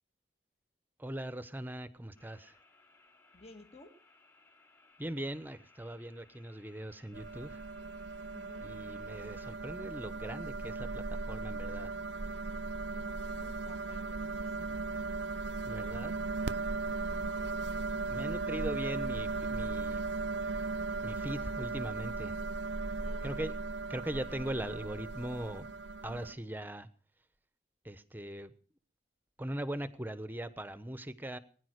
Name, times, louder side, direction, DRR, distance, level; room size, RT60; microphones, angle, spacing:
voice 1, 1.0-2.5 5.0-7.6 8.6-11.9 15.7-16.1 18.1-20.0 21.0-22.3 23.2-23.6 23.9-25.7 26.0-26.9 27.8-28.5 29.4-31.4, right 1 dB, 10° right, 13 dB, 1.0 m, -40 dB
sound 1, 2.1-9.6, left 3 dB, 15° left, 2.9 m, -64 dB
voice 2, 3.3-3.9 8.3-8.7 12.9-14.8 16.8-17.5 23.0-23.5, left 2 dB, 35° left, 6 dB, 1.9 m, -55 dB
sound 2, 7.1-26.3, right 3 dB, 75° right, 0.7 m, -37 dB
21.0 x 10.5 x 6.5 m, 0.43 s
head